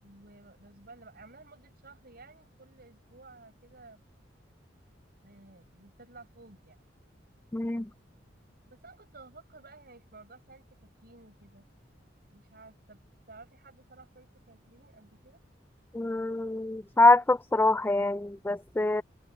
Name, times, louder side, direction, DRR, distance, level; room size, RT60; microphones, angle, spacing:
voice 1, 0.0-4.0 5.2-6.8 8.6-11.7 12.3-13.0 13.3-15.4, right 3 dB, 55° right, 7.2 m, -54 dB
voice 2, 7.5-7.9 15.9-19.0, left 2 dB, 10° left, 0.4 m, -24 dB
head